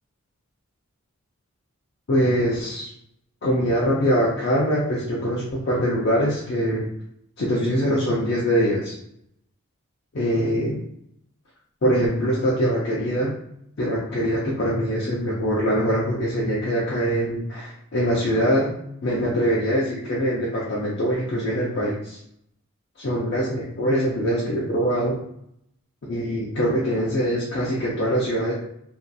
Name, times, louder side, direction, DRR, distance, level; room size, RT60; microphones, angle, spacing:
voice 1, 2.1-2.9 3.4-6.9 7.4-8.9 10.1-10.8 11.8-13.4 13.8-18.7 19.0-22.2 23.0-25.2 26.0-28.5, equal, 50° left, -5 dB, 0.4 m, -23 dB
2.7 x 2.4 x 2.3 m, 0.74 s
head